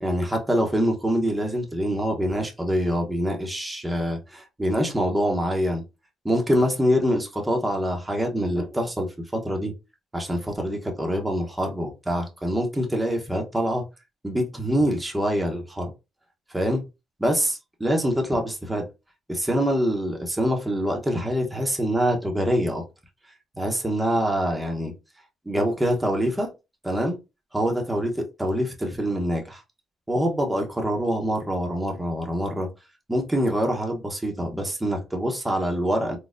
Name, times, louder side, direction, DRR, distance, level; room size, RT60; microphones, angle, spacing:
voice 1, 0.0-5.8 6.2-9.7 10.1-13.8 14.2-15.9 16.5-16.8 17.2-18.9 19.3-22.8 23.6-24.9 25.5-26.5 26.8-27.2 27.5-29.6 30.1-32.7 33.1-36.2, equal, 10° right, 0.9 m, -25 dB
4.0 x 2.3 x 2.5 m
cardioid pair, 90°, 0 cm